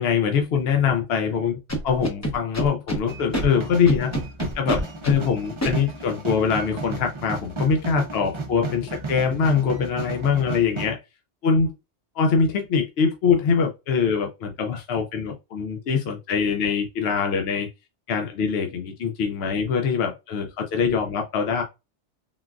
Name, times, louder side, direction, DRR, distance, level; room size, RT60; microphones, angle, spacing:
voice 1, 0.0-1.6 1.8-4.1 4.5-11.0 11.4-11.7 12.2-17.7 18.1-21.6, left 6 dB, 65° left, 0.7 m, -23 dB
Scratching (performance technique), 1.7-3.0 3.3-3.5 3.9-5.2 5.6-5.7, right 1 dB, 20° left, 0.6 m, -26 dB
sound 1, 3.1-10.9, right 3 dB, 40° right, 0.4 m, -34 dB
3.8 x 2.2 x 2.3 m
omnidirectional pair, 1.2 m